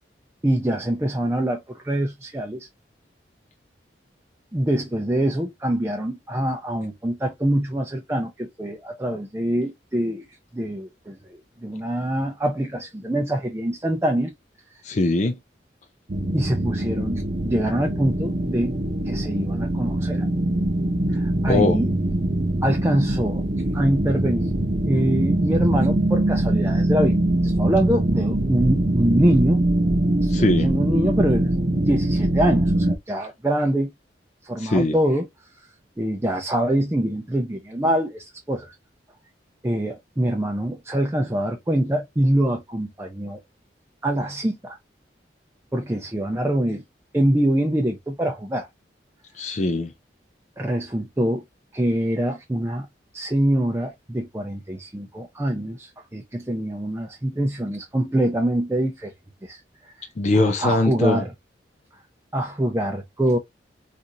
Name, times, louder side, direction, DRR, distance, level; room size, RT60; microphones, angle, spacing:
voice 1, 0.4-2.7 4.5-10.3 10.5-14.3 16.3-18.7 19.1-20.3 21.1-21.9 22.6-23.4 23.7-24.5 24.9-27.2 27.4-29.6 30.2-33.9 34.4-35.3 36.0-38.7 39.6-43.4 44.0-44.8 45.7-46.8 47.1-48.7 50.6-51.4 51.7-52.9 53.1-59.1 59.4-59.6 60.3-61.3 62.3-63.4, right 1 dB, 15° right, 0.5 m, -24 dB
voice 2, 14.8-15.4 21.5-21.8 30.3-30.7 34.6-35.0 49.3-49.9 60.2-61.2, left 2 dB, 40° left, 0.4 m, -21 dB
sound 1, 16.1-33.0, right 1 dB, 45° right, 0.7 m, -23 dB
3.9 x 2.5 x 2.7 m
head